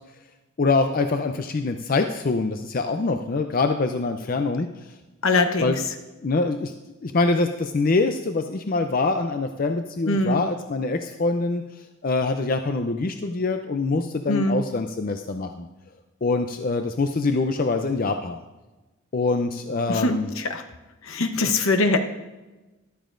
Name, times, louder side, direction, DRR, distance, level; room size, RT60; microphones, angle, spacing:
voice 1, 0.6-4.7 5.6-5.8 6.2-6.7 7.0-11.6 12.0-15.7 16.2-18.4 19.1-20.3 21.4-21.6, left 3 dB, 40° left, 6 dB, 0.5 m, -24 dB
voice 2, 5.2-5.7 10.1-10.4 14.3-14.6 19.9-20.6 21.0-22.0, left 2 dB, 70° left, 7 dB, 0.9 m, -22 dB
14.0 x 12.0 x 2.5 m, 1.1 s
head